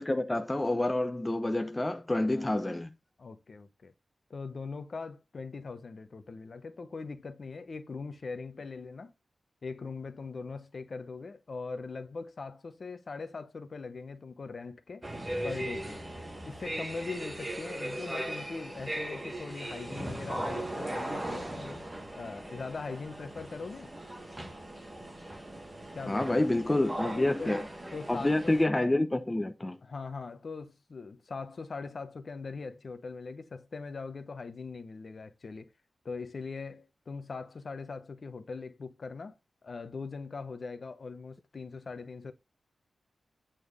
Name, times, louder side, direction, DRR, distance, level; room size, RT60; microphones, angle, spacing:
voice 1, 0.0-2.9 26.1-27.7 28.1-29.8, left 1 dB, 15° left, 0.7 m, -28 dB
voice 2, 3.2-3.9 4.3-9.1 9.6-15.0 15.4-16.0 16.5-21.9 22.2-23.9 25.9-26.4 27.0-27.6 27.9-28.6 29.8-35.7 36.0-39.3 39.6-42.3, left 4 dB, 45° left, 1.0 m, -41 dB
sound 1, 15.0-28.7, right 1 dB, 15° right, 1.4 m, -38 dB
9.0 x 4.4 x 4.9 m
wide cardioid pair, 165°, 0 cm